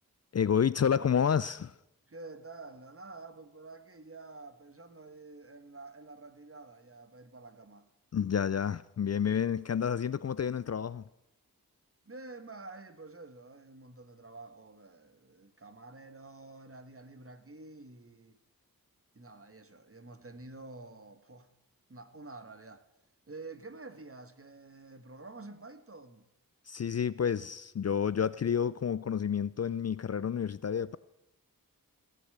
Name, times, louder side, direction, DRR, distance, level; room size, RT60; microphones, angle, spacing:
voice 1, 0.3-1.7 8.1-11.0 26.7-31.0, left 7 dB, 45° left, 0.4 m, -29 dB
voice 2, 2.1-7.9 12.0-18.4 19.1-21.5 21.9-22.9 23.3-26.3, right 3 dB, 40° right, 1.2 m, -49 dB
16.0 x 8.3 x 6.7 m
cardioid pair, 40°, 36 cm